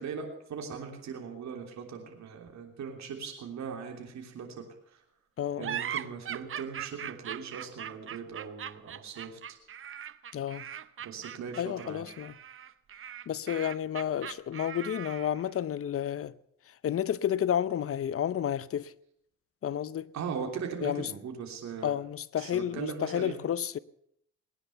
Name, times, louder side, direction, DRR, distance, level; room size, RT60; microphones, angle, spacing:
voice 1, 0.0-4.5 4.9-5.0 5.6-9.4 11.0-12.0 20.1-21.9 22.4-23.4, right 6 dB, 65° right, 3.3 m, -39 dB
voice 2, 5.4-5.8 10.3-10.7 11.6-12.3 13.3-16.3 16.7-18.9 19.6-20.1 20.8-21.1 21.8-23.8, left 10 dB, 50° left, 0.7 m, -31 dB
sound 1, 5.6-15.5, right 9 dB, 45° right, 0.7 m, -40 dB
19.5 x 10.0 x 7.0 m
cardioid pair, 90°, 30 cm